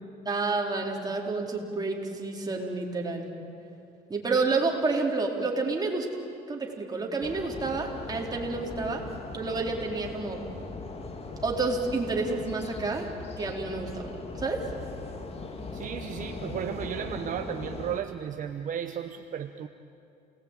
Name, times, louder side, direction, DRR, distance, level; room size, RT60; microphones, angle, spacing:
voice 1, 0.3-3.3 4.1-6.1 6.5-9.0 9.3-10.4 11.4-13.1 13.4-14.7, right 3 dB, 25° right, 0 dB, 3.9 m, -29 dB
sound 1, 7.2-18.0, left 3 dB, 35° left, 2.4 m, -39 dB
voice 2, 15.7-19.7, right 9 dB, 50° right, 7 dB, 1.0 m, -34 dB
28.5 x 19.5 x 9.1 m, 2.7 s
cardioid pair, 110°, 17 cm